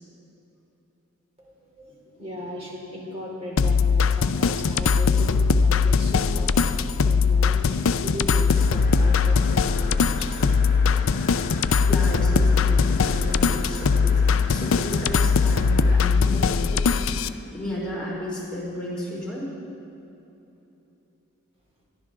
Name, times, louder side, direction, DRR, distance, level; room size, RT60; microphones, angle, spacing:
voice 1, 1.4-10.9, equal, 30° right, -3 dB, 3.3 m, -37 dB
sound 1, 3.6-17.3, left 5 dB, 65° left, 0.4 m, -21 dB
sound 2, 8.5-16.0, left 2 dB, 40° left, 1.2 m, -38 dB
voice 2, 11.8-19.5, left 1 dB, 5° left, -7 dB, 4.1 m, -33 dB
22.0 x 13.0 x 3.8 m, 3.0 s
head